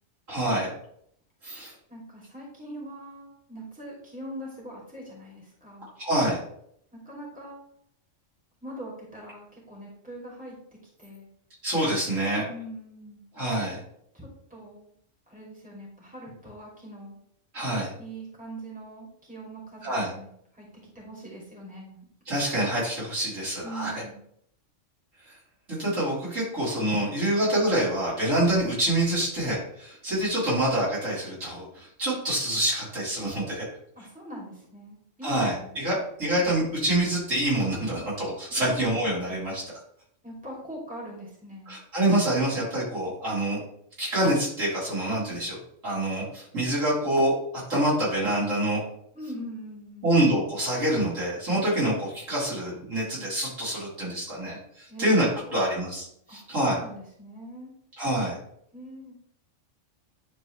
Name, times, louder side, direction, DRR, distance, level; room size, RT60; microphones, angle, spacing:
voice 1, 0.3-0.7 1.4-1.7 6.0-6.4 11.6-12.5 13.4-13.8 17.5-17.9 19.8-20.1 22.3-23.9 25.3-25.4 25.7-33.7 35.2-39.6 41.7-43.6 44.0-47.4 47.7-48.8 50.0-55.3 55.5-56.8 58.0-58.4, right 1 dB, 75° right, -8 dB, 3.9 m, -26 dB
voice 2, 1.9-5.9 6.9-7.6 8.6-10.5 11.0-11.3 12.5-13.2 14.1-14.9 15.3-17.2 18.0-20.7 20.9-22.0 23.6-24.2 34.0-35.7 38.6-38.8 40.2-41.8 49.1-50.1 54.9-55.1 55.4-55.7 56.3-56.4 56.8-57.7 58.7-59.1, right 1 dB, 5° right, -5 dB, 2.8 m, -42 dB
10.5 x 4.1 x 3.2 m, 0.69 s
omnidirectional pair, 1.3 m